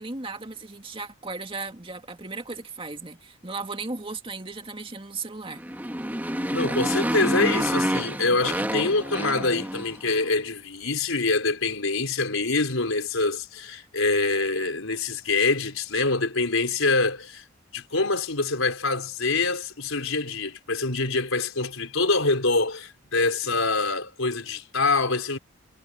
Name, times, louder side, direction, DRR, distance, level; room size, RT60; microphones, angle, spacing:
voice 1, 0.0-5.6, right 3 dB, 25° right, 2.2 m, -36 dB
Motorcycle, 5.5-10.1, equal, 10° right, 2.1 m, -28 dB
voice 2, 6.5-17.4 17.7-25.4, left 3 dB, 80° left, 4.2 m, -25 dB
head